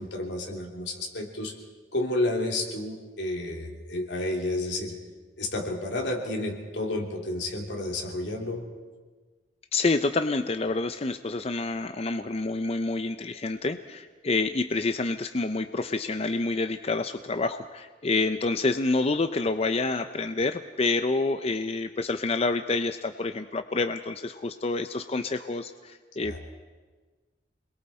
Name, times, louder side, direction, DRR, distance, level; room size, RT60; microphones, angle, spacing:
voice 1, 0.0-1.5 1.9-5.0 5.4-8.6 26.2-26.4, left 2 dB, 80° left, 1 dB, 3.4 m, -31 dB
voice 2, 9.7-26.4, left 3 dB, 35° left, 9 dB, 0.6 m, -28 dB
28.5 x 21.5 x 4.4 m, 1.4 s
head